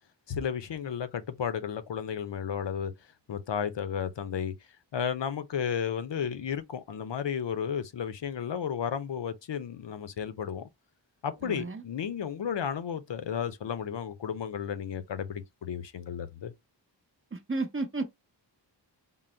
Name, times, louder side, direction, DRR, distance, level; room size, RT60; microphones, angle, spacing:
voice 1, 0.3-2.9 3.3-4.5 4.9-10.7 11.2-16.5, left 8 dB, 80° left, 0.6 m, -33 dB
voice 2, 11.4-11.8 17.3-18.0, right 3 dB, 30° right, 0.7 m, -32 dB
3.8 x 2.0 x 4.2 m
wide cardioid pair, 75°, 43 cm